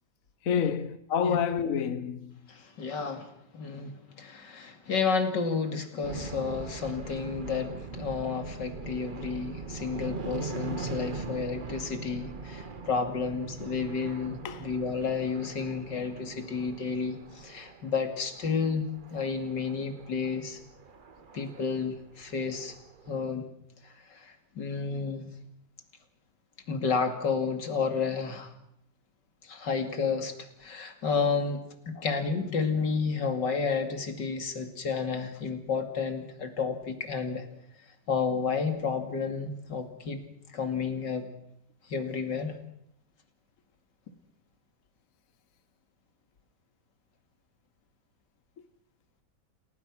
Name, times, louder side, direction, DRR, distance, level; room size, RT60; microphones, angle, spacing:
voice 1, 0.5-2.3 14.4-14.6 32.0-32.1, left 7 dB, 55° left, 1.4 m, -28 dB
voice 2, 2.5-3.3 3.5-17.2 17.4-18.8 19.1-20.6 21.3-22.7 23.1-23.5 24.2-25.3 26.7-28.5 29.5-30.3 30.6-31.6 31.9-37.4 38.1-40.2 40.5-41.3 41.9-42.6, left 5 dB, 85° left, 3.1 m, -31 dB
sound 1, 6.0-23.3, right 4 dB, 35° right, 1.0 m, -41 dB
29.0 x 18.0 x 6.2 m
omnidirectional pair, 1.8 m